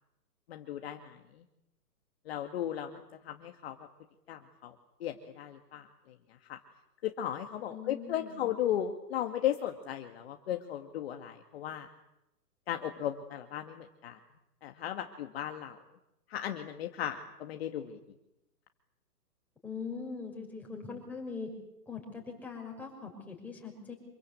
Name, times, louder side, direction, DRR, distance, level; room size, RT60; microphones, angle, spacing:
voice 1, 0.5-1.2 2.3-3.8 4.3-4.7 5.0-5.9 6.5-6.6 7.0-11.9 12.7-14.2 14.6-15.8 16.3-18.0, left 11 dB, 40° left, 5 dB, 2.1 m, -36 dB
voice 2, 7.7-8.4 19.6-21.5 21.9-23.9, left 5 dB, 5° left, -1 dB, 6.1 m, -41 dB
27.0 x 24.0 x 8.5 m, 0.87 s
hypercardioid pair, 155°, 48 cm